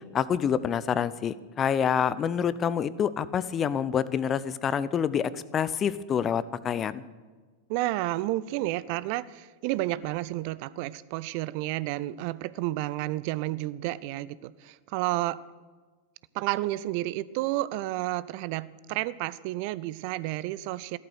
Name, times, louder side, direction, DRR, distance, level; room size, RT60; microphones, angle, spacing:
voice 1, 0.1-7.0, left 8 dB, 25° left, 18 dB, 0.6 m, -27 dB
voice 2, 7.7-15.4 16.3-21.0, right 17 dB, 45° right, 19 dB, 0.5 m, -31 dB
14.5 x 12.5 x 6.5 m, 1.4 s
figure-of-eight pair, 90°, 0 cm